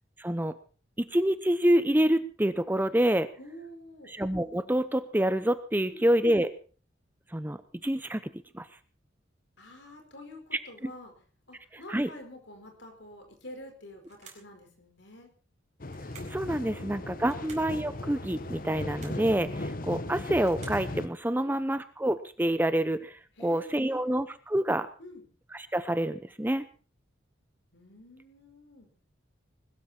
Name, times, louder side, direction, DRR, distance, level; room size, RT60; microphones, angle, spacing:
voice 1, 0.2-0.6 1.0-3.3 4.1-6.5 7.3-8.7 11.9-12.1 16.3-24.9 25.5-26.6, right 1 dB, 10° right, 12 dB, 0.7 m, -27 dB
voice 2, 3.4-4.1 5.9-6.1 9.6-11.1 11.5-15.3 21.4-21.6 23.4-24.1 25.0-25.3 27.7-28.9, left 1 dB, 65° left, 4 dB, 5.0 m, -48 dB
sound 1, 14.0-14.6 15.9-16.5 17.2-17.7 18.7-19.3 20.1-20.9, right 6 dB, 35° right, 4.8 m, -52 dB
sound 2, 15.8-21.1, left 2 dB, 45° left, 1.1 m, -37 dB
20.5 x 13.0 x 4.4 m, 0.38 s
head